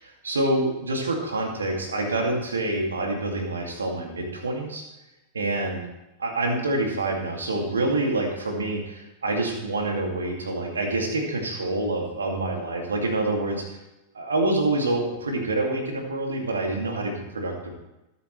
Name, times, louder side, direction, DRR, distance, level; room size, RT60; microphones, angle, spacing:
voice 1, 0.0-4.8 5.3-5.9 6.2-13.7 14.1-17.7, right 2 dB, 70° right, 2 dB, 2.5 m, -27 dB
20.5 x 8.2 x 3.3 m, 0.96 s
figure-of-eight pair, 90°, 0 cm